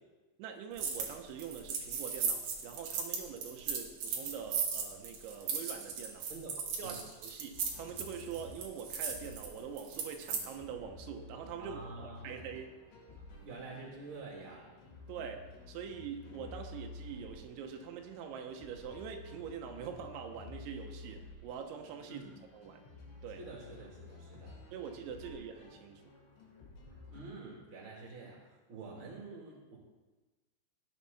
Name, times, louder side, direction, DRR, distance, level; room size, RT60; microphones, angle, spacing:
voice 1, 0.4-6.3 6.8-12.8 15.1-22.2 22.5-22.8 23.2-23.4 24.7-26.0, right 7 dB, 90° right, 4 dB, 3.3 m, -44 dB
sound 1, 0.8-1.1 1.4-10.4, right 6 dB, 60° right, 2.3 m, -37 dB
voice 2, 6.3-7.0 11.6-12.5 13.4-14.7 22.1-22.3 23.4-24.6 27.1-29.8, right 3 dB, 30° right, -2 dB, 3.0 m, -48 dB
sound 2, 7.5-27.3, left 3 dB, 70° left, 4.9 m, -52 dB
18.0 x 7.4 x 4.2 m, 1.2 s
omnidirectional pair, 5.3 m